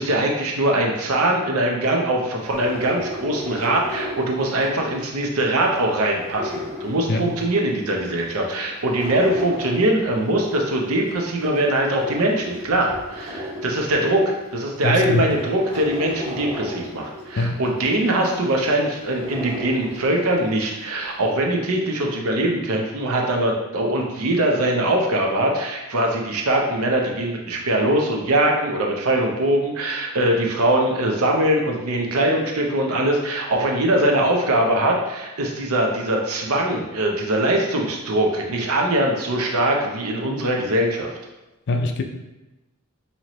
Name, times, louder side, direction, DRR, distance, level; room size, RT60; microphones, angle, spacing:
voice 1, 0.0-41.1, right 1 dB, 70° right, 1 dB, 0.7 m, -22 dB
sound 1, 2.4-5.0 5.4-7.7 8.2-10.8 11.2-14.3 14.8-14.9 15.3-20.5 20.8-20.9, left 1 dB, 30° right, 1.3 m, -34 dB
voice 2, 14.8-15.3 17.4-17.6 41.7-42.0, left 2 dB, 50° left, 5 dB, 0.4 m, -22 dB
4.4 x 2.8 x 3.0 m, 1.0 s
head